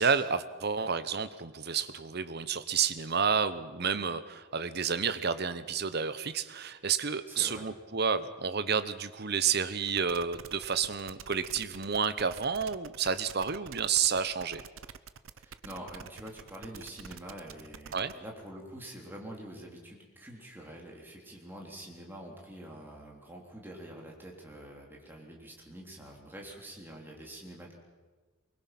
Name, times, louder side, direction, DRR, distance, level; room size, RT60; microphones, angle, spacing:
voice 1, 0.0-14.6 17.9-18.1, right 6 dB, 50° right, 12 dB, 0.9 m, -30 dB
voice 2, 7.3-7.7 15.3-27.8, right 1 dB, 10° right, -1 dB, 3.6 m, -46 dB
sound 1, 9.9-18.1, right 7 dB, 80° right, 0.7 m, -48 dB
24.0 x 21.5 x 6.0 m, 1.3 s
head